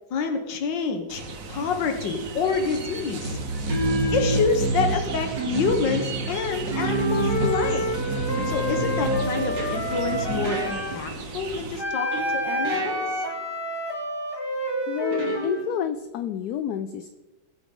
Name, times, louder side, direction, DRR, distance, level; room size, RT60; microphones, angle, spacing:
voice 1, 0.1-1.2 1.5-3.4 4.1-7.9 8.5-13.0, left 5 dB, 90° left, 5 dB, 1.8 m, -27 dB
sound 1, 1.1-11.8, right 2 dB, 50° right, 1.5 m, -29 dB
sound 2, 1.6-1.9 3.7-4.9 5.4-7.6 8.4-11.4 12.1-13.4 15.1-16.0, right 1 dB, 80° right, 3.0 m, -33 dB
Wind instrument woodwind instrument, 6.8-11.0 11.8-15.7, equal, 15° left, 1.6 m, -29 dB
voice 2, 14.9-17.1, left 9 dB, 70° left, 10 dB, 1.0 m, -29 dB
21.0 x 8.0 x 3.8 m, 1.1 s
omnidirectional pair, 1.9 m